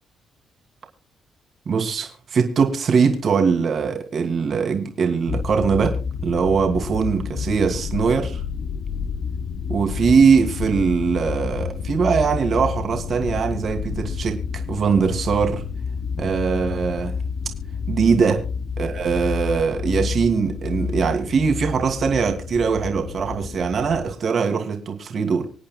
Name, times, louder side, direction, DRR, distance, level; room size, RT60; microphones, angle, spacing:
voice 1, 1.7-5.9 6.2-8.4 9.7-15.6 16.2-17.1 17.9-18.4 18.8-25.4, right 5 dB, 55° right, 4 dB, 2.6 m, -21 dB
sound 1, 5.3-24.1, left 6 dB, 60° left, 0.7 m, -29 dB
26.0 x 8.8 x 2.3 m, 0.35 s
cardioid pair, 90°, 0 cm